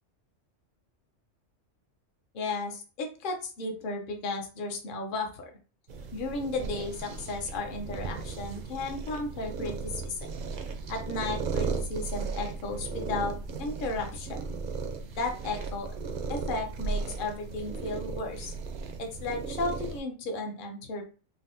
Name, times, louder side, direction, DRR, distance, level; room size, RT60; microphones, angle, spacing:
voice 1, 2.3-5.5 6.1-10.3 10.9-14.4 15.2-15.9 16.3-18.5 19.0-21.0, left 3 dB, 50° left, 3 dB, 0.8 m, -34 dB
sound 1, 5.9-20.0, right 4 dB, 60° right, 0.5 m, -36 dB
4.0 x 2.1 x 2.6 m, 0.36 s
omnidirectional pair, 1.3 m